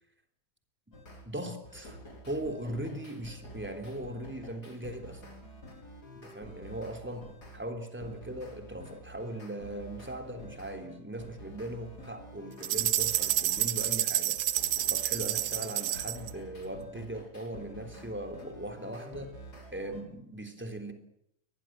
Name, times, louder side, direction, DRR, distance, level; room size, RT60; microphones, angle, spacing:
sound 1, 0.9-1.3 1.6-7.6 8.0-14.0 14.4-20.0, equal, 30° left, 5.4 m, -49 dB
voice 1, 1.2-2.0 2.3-5.2 6.1-14.4 14.9-19.4 19.7-20.9, right 1 dB, 5° right, 5 dB, 3.0 m, -39 dB
sound 2, 12.6-16.3, right 13 dB, 75° right, 2.5 m, -29 dB
23.0 x 20.5 x 7.6 m, 0.74 s
omnidirectional pair, 3.5 m